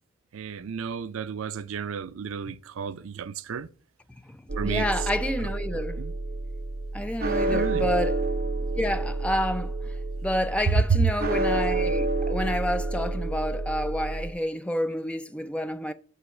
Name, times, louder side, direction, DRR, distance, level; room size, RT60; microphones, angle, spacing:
voice 1, 0.3-3.7 4.6-4.9 5.7-6.1 7.5-7.9 10.7-11.1, right 5 dB, 75° right, 0.4 m, -29 dB
sound 1, 4.5-14.3, right 2 dB, 45° right, 0.8 m, -29 dB
voice 2, 4.6-6.0 6.9-8.2 8.8-9.7 10.2-15.9, left 1 dB, 5° left, 0.4 m, -29 dB
8.3 x 6.0 x 4.8 m
head